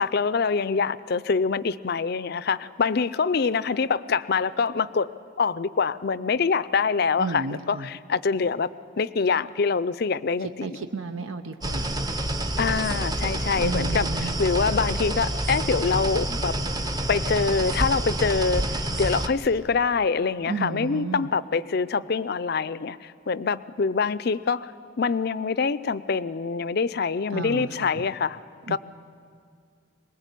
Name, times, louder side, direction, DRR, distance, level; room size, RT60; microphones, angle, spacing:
voice 1, 0.0-5.1 5.4-8.7 9.0-10.7 12.6-16.5 17.1-24.7 25.0-28.4 28.7-28.8, left 5 dB, 50° left, 16 dB, 0.5 m, -25 dB
voice 2, 7.2-7.9 10.4-12.0 13.5-14.4 20.5-21.3 27.3-27.9 28.7-28.8, right 4 dB, 85° right, 7 dB, 0.8 m, -33 dB
sound 1, 11.6-19.3, right 1 dB, 20° right, 0.8 m, -27 dB
23.0 x 20.0 x 8.3 m, 2.3 s
head